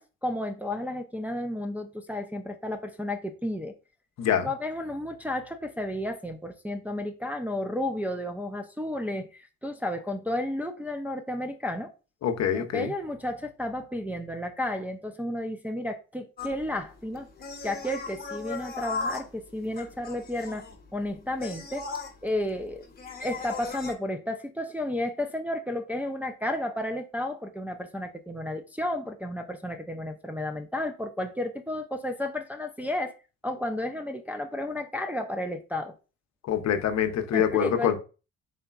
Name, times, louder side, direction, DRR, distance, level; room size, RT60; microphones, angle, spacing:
voice 1, 0.0-3.7 4.4-11.9 12.5-17.3 17.6-20.6 20.9-21.9 22.2-22.8 23.2-33.1 33.4-35.9 37.3-38.0, left 1 dB, 5° right, 0.4 m, -32 dB
voice 2, 4.2-4.5 12.2-12.9 36.5-38.0, left 9 dB, 60° left, 0.7 m, -25 dB
sound 1, 16.4-23.9, left 4 dB, 30° left, 0.9 m, -37 dB
3.9 x 3.4 x 2.4 m
cardioid pair, 90°, 30 cm